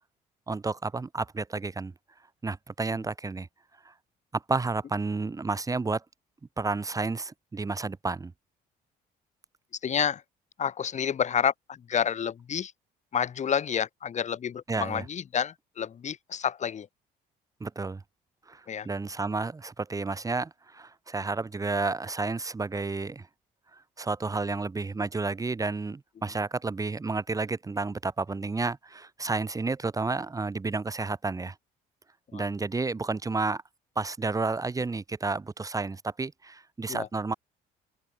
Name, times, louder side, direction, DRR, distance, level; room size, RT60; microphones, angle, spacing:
voice 1, 0.5-1.9 2.4-3.5 3.8-3.9 4.3-6.0 6.6-8.3 14.7-15.1 17.6-18.0 18.5-23.3 23.7-31.5 32.3-33.6 34.0-37.3, right 3 dB, 20° right, 2.2 m, -31 dB
voice 2, 9.8-10.2 10.6-12.7 13.1-16.9 18.7-18.9 32.3-32.4 36.9-37.1, left 8 dB, 45° left, 3.4 m, -29 dB
cardioid pair, 110°, 17 cm